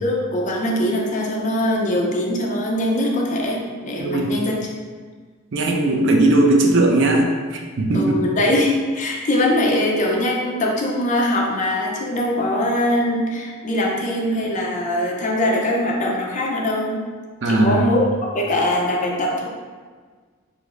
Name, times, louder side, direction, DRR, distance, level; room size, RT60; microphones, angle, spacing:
voice 1, 0.0-4.7 7.9-17.1 17.4-19.5, left 1 dB, 35° left, -1 dB, 0.6 m, -22 dB
voice 2, 4.0-4.3 5.5-8.2 17.4-17.9, right 2 dB, 60° right, 2 dB, 0.5 m, -18 dB
4.9 x 2.0 x 3.7 m, 1.5 s
head